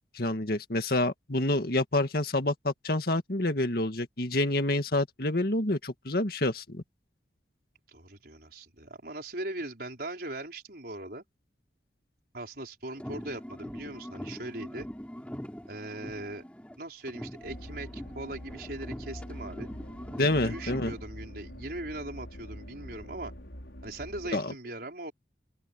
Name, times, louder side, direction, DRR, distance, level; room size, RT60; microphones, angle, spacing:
voice 1, 0.0-6.8 20.2-20.9 24.3-24.5, left 2 dB, 55° left, 2.0 m, -28 dB
voice 2, 7.9-11.2 12.3-14.9 15.7-16.4 16.8-19.7 20.4-23.3 23.8-25.1, right 2 dB, 55° right, 5.4 m, -40 dB
sound 1, 12.9-16.8 17.1-21.1, equal, 5° left, 3.5 m, -42 dB
sound 2, 17.4-24.3, equal, 85° left, 5.9 m, -44 dB
open air
head